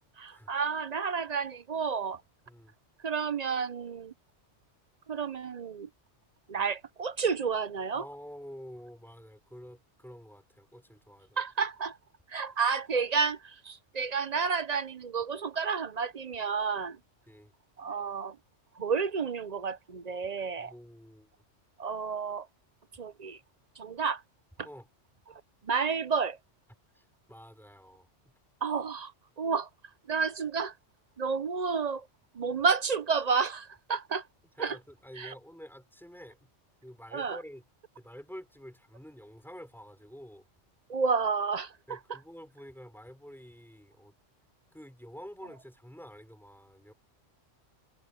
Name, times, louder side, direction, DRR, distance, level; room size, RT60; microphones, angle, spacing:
voice 1, 0.2-2.2 3.0-4.1 5.1-5.9 6.5-8.1 11.4-12.0 12.3-17.0 17.8-18.4 18.8-20.7 21.8-22.5 22.9-23.4 23.8-24.2 24.6-24.7 25.3-26.4 28.6-29.7 30.1-30.8 31.2-32.1 32.3-34.3 34.6-34.8 35.2-35.3 37.1-37.4 40.9-42.2, right 5 dB, 40° right, 0.7 m, -31 dB
voice 2, 7.9-11.4 17.3-17.5 20.6-21.3 24.6-24.9 26.9-28.1 34.6-36.5 36.8-37.6 38.0-40.5 41.9-44.1 44.7-46.9, equal, ahead, 4.8 m, -48 dB
omnidirectional pair, 1.2 m